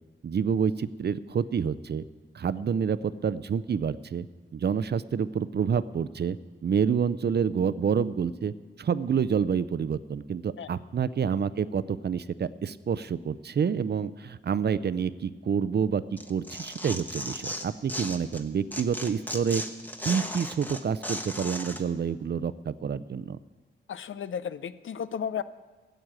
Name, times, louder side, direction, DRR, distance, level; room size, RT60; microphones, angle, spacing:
voice 1, 0.2-2.0 2.3-4.3 4.5-6.4 6.6-8.5 8.8-19.6 20.0-23.4, right 7 dB, 55° right, 15 dB, 0.5 m, -28 dB
Tearing, 16.2-18.4 18.7-21.8, equal, 10° left, 1.1 m, -35 dB
voice 2, 23.9-25.4, left 8 dB, 80° left, 15 dB, 0.6 m, -34 dB
14.0 x 7.9 x 8.8 m, 1.3 s
wide cardioid pair, 90°, 20 cm